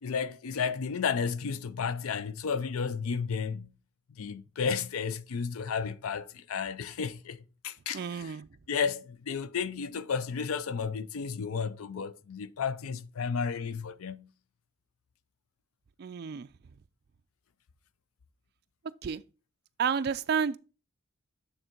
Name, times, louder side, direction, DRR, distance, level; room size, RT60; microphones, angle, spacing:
voice 1, 0.0-3.7 4.2-8.4 8.7-14.3, left 6 dB, 90° left, 0.5 m, -33 dB
voice 2, 7.9-8.5 16.0-16.5 19.0-19.2 19.8-20.6, right 6 dB, 50° right, 0.3 m, -30 dB
9.1 x 3.6 x 4.4 m
head